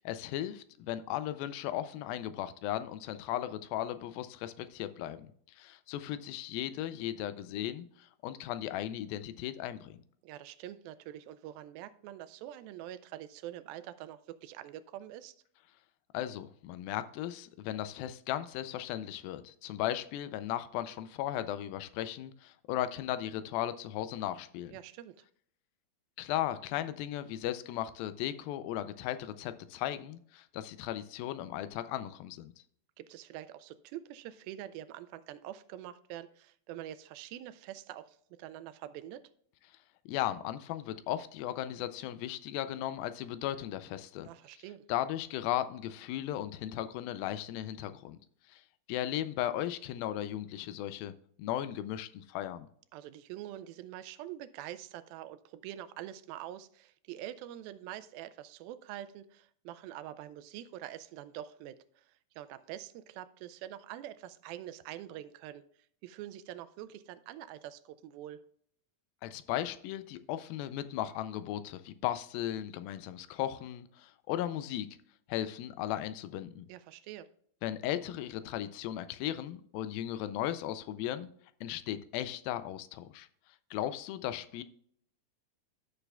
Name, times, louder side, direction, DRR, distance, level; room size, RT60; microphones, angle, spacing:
voice 1, 0.1-5.3 5.6-10.0 16.1-24.7 26.2-32.5 40.1-44.3 44.9-48.2 48.5-48.6 48.9-52.7 69.2-74.9 75.3-76.7 77.6-81.3 81.6-83.3 83.7-84.6, left 12 dB, 85° left, 12 dB, 2.3 m, -36 dB
voice 2, 10.2-15.4 24.7-25.2 33.0-39.2 44.2-44.8 52.9-65.7 66.0-68.4 76.7-77.3, right 12 dB, 85° right, 13 dB, 2.4 m, -45 dB
13.5 x 6.7 x 2.3 m, 0.62 s
omnidirectional pair, 4.2 m